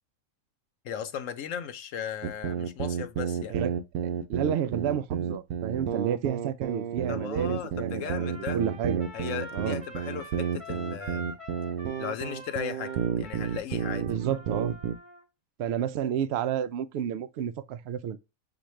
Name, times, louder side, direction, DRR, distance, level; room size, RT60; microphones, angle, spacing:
voice 1, 0.8-3.6 7.1-8.6 9.1-11.3 12.0-14.1, left 8 dB, 65° left, 1.0 m, -36 dB
sound 1, 2.2-15.0, right 8 dB, 85° right, 1.1 m, -31 dB
voice 2, 4.3-9.0 9.5-9.8 14.1-14.7 15.6-18.2, right 9 dB, 70° right, 0.6 m, -31 dB
Trumpet, 8.1-15.2, equal, 25° right, 1.0 m, -45 dB
7.0 x 2.4 x 3.1 m
omnidirectional pair, 1.5 m